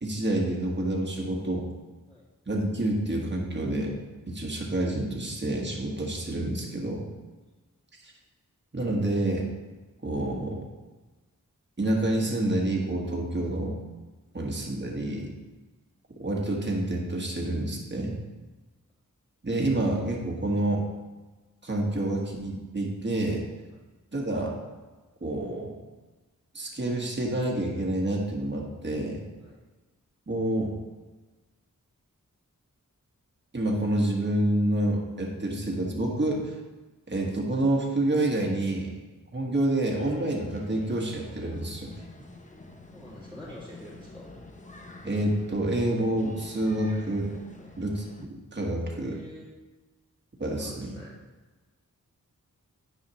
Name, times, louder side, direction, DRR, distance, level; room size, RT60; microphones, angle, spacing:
voice 1, 0.0-1.7 2.5-3.9 4.3-7.0 8.0-8.1 8.7-9.5 10.0-10.6 11.8-13.7 14.3-15.3 16.2-18.1 19.4-20.9 21.6-23.4 24.1-24.5 25.2-25.8 26.5-29.2 30.3-30.7 33.5-36.5 37.1-38.9 39.3-41.9 45.0-47.4 47.8-49.1 50.4-50.9, right 1 dB, 35° right, -1 dB, 1.5 m, -28 dB
sound 1, 40.0-48.3, left 2 dB, 20° left, 0.7 m, -48 dB
voice 2, 42.9-44.4 47.5-47.7 48.9-49.5 50.4-51.1, left 1 dB, 5° left, -10 dB, 2.0 m, -45 dB
9.9 x 4.9 x 3.0 m, 1.2 s
cardioid pair, 45°, 33 cm